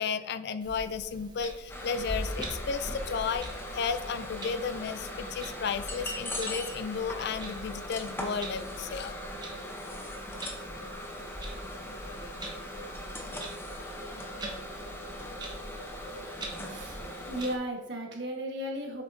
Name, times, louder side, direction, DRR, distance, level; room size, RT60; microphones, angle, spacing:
voice 1, 0.0-3.5 3.7-9.2, left 6 dB, 55° left, 12 dB, 0.4 m, -33 dB
Clock, 0.6-17.5, right 1 dB, 20° right, 1.2 m, -43 dB
sound 1, 1.7-17.6, left 1 dB, 10° left, 0.8 m, -40 dB
voice 2, 16.7-17.0 17.3-19.0, right 1 dB, 55° right, 1 dB, 1.4 m, -35 dB
8.1 x 6.6 x 2.7 m, 1.1 s
head